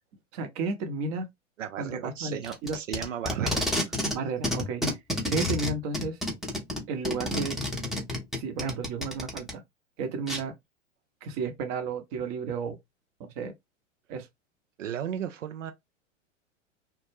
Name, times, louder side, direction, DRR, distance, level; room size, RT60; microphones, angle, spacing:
voice 1, 0.3-1.3 1.8-2.8 3.3-3.5 4.1-4.8 5.3-6.2 6.9-7.6 8.4-9.6 10.0-10.5 11.2-12.8 13.4-13.5 14.1-14.3, right 4 dB, 40° right, 0.8 m, -32 dB
voice 2, 1.6-3.6 3.9-4.1 14.8-15.7, right 9 dB, 80° right, 0.5 m, -35 dB
Packing tape duct tape, 2.4-4.2 4.4-9.5 10.3-10.4, left 1 dB, ahead, 0.6 m, -30 dB
2.2 x 2.1 x 3.1 m
hypercardioid pair, 100°, 37 cm